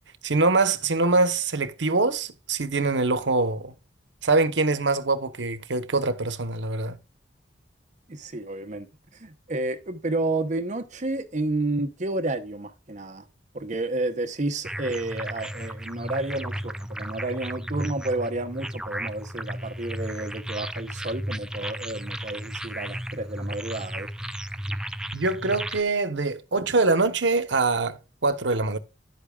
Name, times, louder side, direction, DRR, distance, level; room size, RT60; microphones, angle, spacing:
voice 1, 0.2-3.7 4.2-7.0 25.1-28.8, right 3 dB, 80° right, 1.1 m, -24 dB
voice 2, 8.1-13.3 13.5-24.1, right 2 dB, 40° right, 0.8 m, -31 dB
sound 1, 14.6-25.8, right 1 dB, 5° right, 0.4 m, -34 dB
11.0 x 8.4 x 2.4 m
head